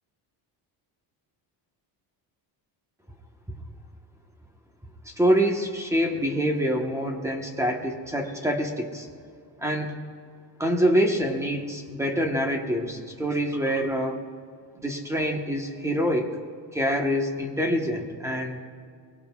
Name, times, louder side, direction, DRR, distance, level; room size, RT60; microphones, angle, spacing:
voice 1, 5.0-9.1 9.6-9.9 10.6-14.2 14.8-16.3 16.7-18.6, equal, 5° right, 2 dB, 1.1 m, -25 dB
23.5 x 22.0 x 2.4 m, 2.2 s
cardioid pair, 155°, 45 cm